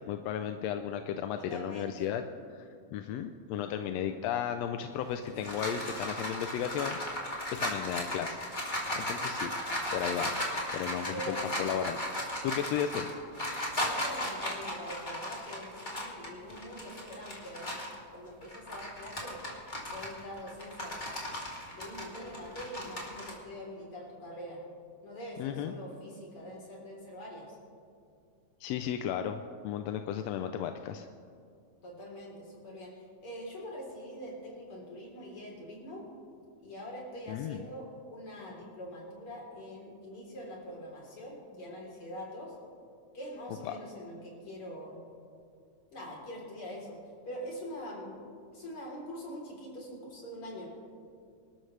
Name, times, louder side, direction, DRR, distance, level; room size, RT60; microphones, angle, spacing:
voice 1, 0.1-2.2 2.5-2.6 2.9-9.5 9.9-10.3 10.7-13.1 25.4-25.7 28.6-31.1 37.3-37.6 43.6-43.8, left 9 dB, 75° left, 7 dB, 1.6 m, -35 dB
voice 2, 1.3-2.1 5.3-5.4 11.1-11.7 13.8-19.4 19.9-21.1 21.7-24.6 25.0-27.6 31.8-36.0 36.6-42.5 43.1-45.0 45.9-47.0 47.2-48.1 48.5-50.7, equal, 50° left, -3 dB, 4.4 m, -44 dB
sound 1, 5.0-18.0 18.4-23.3, left 1 dB, 15° left, 2.3 m, -36 dB
26.5 x 13.0 x 3.3 m, 2.3 s
omnidirectional pair, 3.3 m